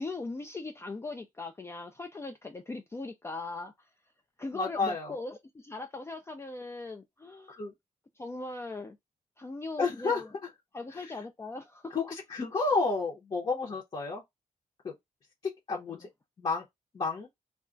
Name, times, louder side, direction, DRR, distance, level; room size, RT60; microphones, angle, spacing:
voice 1, 0.0-3.7 4.4-7.6 8.2-9.0 9.4-10.3 10.7-11.9 15.9-16.0, left 3 dB, 20° left, 0.3 m, -39 dB
voice 2, 4.5-5.2 7.5-7.7 9.8-10.2 10.9-11.2 11.9-14.2 14.8-14.9 15.7-16.1 16.4-16.6 16.9-17.3, left 4 dB, 35° left, 0.8 m, -31 dB
2.3 x 2.2 x 3.7 m
wide cardioid pair, 150°, 14 cm